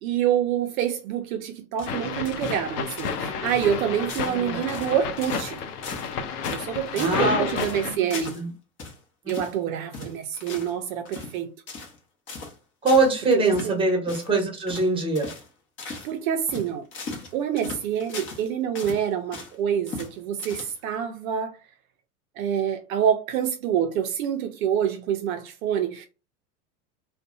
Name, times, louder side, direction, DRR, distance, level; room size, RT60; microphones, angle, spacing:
voice 1, 0.0-5.6 6.4-8.4 9.3-11.5 13.3-13.7 16.0-16.9 17.3-21.6 22.4-26.1, right 9 dB, 65° right, 0.5 m, -27 dB
sound 1, 1.8-3.2 3.5-3.8 4.1-4.4 4.6-5.6 5.8-6.1 6.4-7.3 7.6-8.4 8.8-9.0 9.3-9.6 9.9-10.8 11.0-11.4 11.7-12.0 12.3-12.5 12.9-13.1 13.4-13.7 14.1-14.3 14.7-14.9 15.1-15.5 15.8-16.1 16.5-18.4 18.7-19.5 19.9-20.1 20.4-20.9, left 4 dB, 25° left, 0.8 m, -38 dB
sound 2, 1.9-8.0, left 6 dB, 80° left, 0.6 m, -31 dB
voice 2, 7.0-7.6 8.0-8.1 8.3-8.5 9.2-9.4 12.8-15.3, right 2 dB, 10° right, 1.0 m, -23 dB
2.5 x 2.2 x 2.5 m
hypercardioid pair, 90°, 46 cm